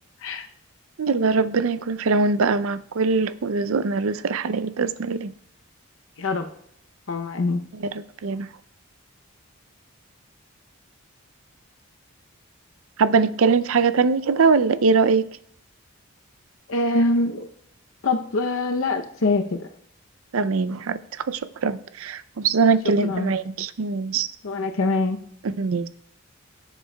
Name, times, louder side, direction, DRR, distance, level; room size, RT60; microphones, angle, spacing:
voice 1, 1.0-5.3 8.2-8.5 13.0-15.2 20.3-21.0 21.3-24.3 25.6-25.9, right 4 dB, 70° right, 0.5 m, -22 dB
voice 2, 6.2-6.5 7.1-7.6 16.7-17.5 18.0-19.7 23.0-23.3 24.4-25.2, left 2 dB, 70° left, 0.7 m, -24 dB
16.0 x 7.3 x 2.3 m
head